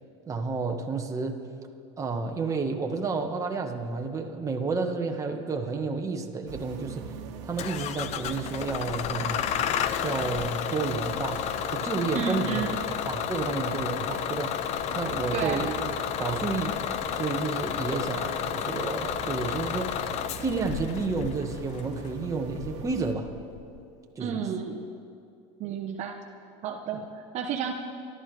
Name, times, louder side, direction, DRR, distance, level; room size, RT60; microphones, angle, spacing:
voice 1, 0.3-1.4 2.0-7.1 7.4-9.4 10.0-11.4 11.7-12.6 12.9-14.5 14.9-15.8 16.2-16.8 17.1-19.9 20.4-23.3 24.1-24.4 26.9-27.0, right 4 dB, 20° right, 2 dB, 1.5 m, -31 dB
sound 1, 6.5-23.1, right 7 dB, 80° right, 1.4 m, -43 dB
Bus / Engine starting, 7.6-23.8, left 9 dB, 50° left, 0.7 m, -32 dB
voice 2, 12.1-12.8 15.3-15.6 24.2-24.8 25.6-26.2 26.6-27.7, right 7 dB, 50° right, 2 dB, 1.1 m, -31 dB
25.0 x 13.0 x 3.4 m, 2.4 s
supercardioid pair, 115°, 15 cm